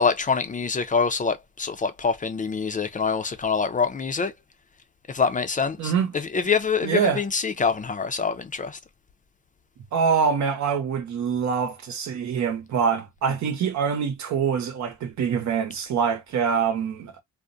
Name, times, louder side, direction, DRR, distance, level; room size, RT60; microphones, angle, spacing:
voice 1, 0.0-4.3 5.1-5.9 6.3-8.8, left 5 dB, 25° left, 0.5 m, -25 dB
voice 2, 5.8-6.1 6.8-7.2 9.9-17.2, right 6 dB, 65° right, 0.9 m, -25 dB
2.4 x 2.1 x 2.5 m
cardioid pair, 90°, 30 cm